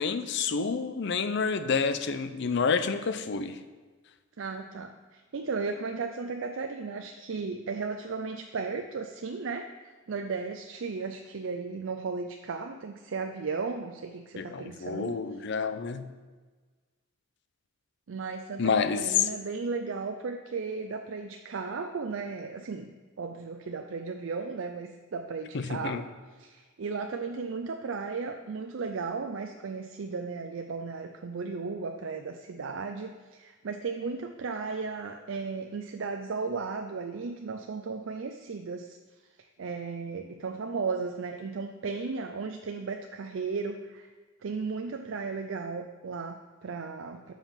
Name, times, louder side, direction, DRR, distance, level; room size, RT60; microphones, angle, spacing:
voice 1, 0.0-3.6 14.4-16.1 18.6-19.3 25.5-26.0, left 5 dB, 60° left, 11 dB, 0.5 m, -28 dB
voice 2, 4.4-9.7 10.1-15.1 18.1-22.9 23.2-26.0 26.4-39.0 39.6-44.1 44.4-47.3, right 4 dB, 70° right, 5 dB, 0.5 m, -35 dB
7.2 x 5.6 x 7.2 m, 1.4 s
head